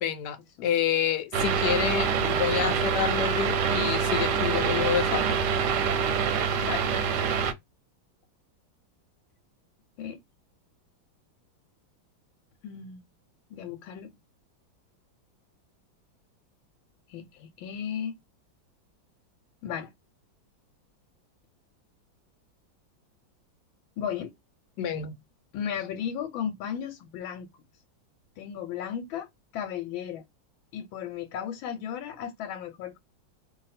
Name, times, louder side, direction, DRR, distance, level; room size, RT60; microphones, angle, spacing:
voice 1, 0.0-0.4 0.6-5.2 24.8-25.1, left 9 dB, 70° left, 1.1 m, -28 dB
sound 1, 1.3-7.5, right 6 dB, 70° right, 1.1 m, -25 dB
voice 2, 12.6-13.1 13.5-14.1 17.1-18.1 19.6-19.9 24.0-24.3 25.5-27.5 28.4-29.3 29.5-30.2 30.7-33.0, left 8 dB, 85° left, 1.4 m, -35 dB
2.7 x 2.7 x 4.0 m
omnidirectional pair, 2.1 m